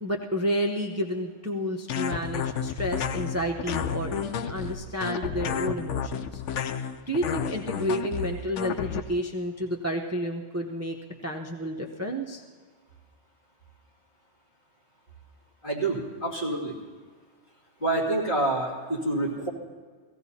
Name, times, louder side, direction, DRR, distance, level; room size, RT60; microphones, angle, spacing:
voice 1, 0.0-6.4 6.7-11.0 11.2-12.4, equal, 15° right, 1 dB, 0.7 m, -30 dB
sound 1, 1.9-9.0, left 8 dB, 85° left, 1.0 m, -31 dB
voice 2, 15.6-16.7 17.8-19.5, right 2 dB, 45° left, -4 dB, 2.9 m, -27 dB
17.0 x 15.5 x 4.2 m, 1.5 s
omnidirectional pair, 1.2 m